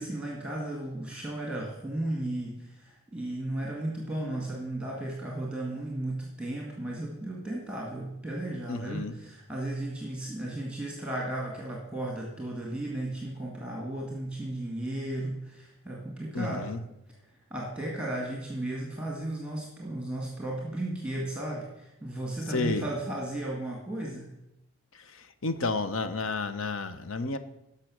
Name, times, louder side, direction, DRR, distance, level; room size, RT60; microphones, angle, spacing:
voice 1, 0.0-16.7 17.5-24.3, right 1 dB, 5° right, -2 dB, 1.8 m, -35 dB
voice 2, 8.7-9.1 16.3-16.8 22.5-22.8 24.9-27.4, left 3 dB, 75° left, 11 dB, 0.8 m, -31 dB
13.5 x 5.6 x 6.2 m, 0.88 s
head